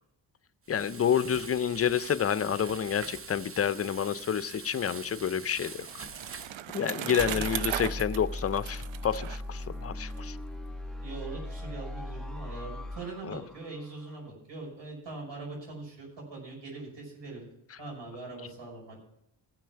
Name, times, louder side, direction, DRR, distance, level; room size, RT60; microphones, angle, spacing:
Frying (food), 0.6-6.6, right 5 dB, 30° right, 0.7 m, -44 dB
voice 1, 0.7-6.0 6.7-10.4 13.3-13.4, left 8 dB, 35° left, 15 dB, 0.5 m, -29 dB
Bicycle, 5.1-10.2, right 12 dB, 90° right, 0.6 m, -37 dB
voice 2, 6.9-7.4 11.0-17.4 17.8-19.0, right 3 dB, 70° right, -1 dB, 5.8 m, -42 dB
sound 1, 7.2-14.1, left 1 dB, ahead, 0.9 m, -39 dB
16.0 x 6.0 x 5.8 m, 0.78 s
cardioid pair, 70°, 45 cm